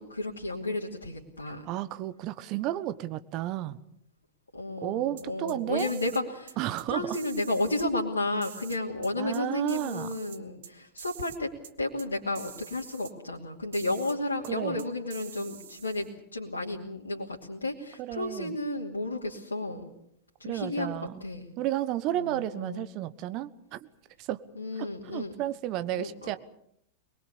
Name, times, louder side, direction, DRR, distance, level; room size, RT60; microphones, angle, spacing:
voice 1, 0.0-1.6 4.5-6.6 6.9-11.5 11.8-19.9 20.4-21.5 22.1-22.9 24.6-25.4 25.9-26.3, left 2 dB, 80° left, -4 dB, 2.7 m, -32 dB
voice 2, 1.6-3.8 4.8-5.9 6.6-7.2 9.2-10.1 14.4-14.8 18.0-18.6 20.4-21.1 21.6-23.9 24.2-24.4 24.8-26.4, right 13 dB, 40° right, 13 dB, 1.3 m, -32 dB
sound 1, 5.2-6.2 6.5-6.8 7.1-7.9 8.4-9.4 9.7-10.7 11.0-11.4 11.6-11.7 12.0-12.1 12.3-13.1 13.7-14.2 14.4-14.5 14.8-16.1, right 9 dB, 55° right, 1.4 m, -46 dB
23.5 x 22.0 x 7.1 m, 0.72 s
figure-of-eight pair, 90°, 0 cm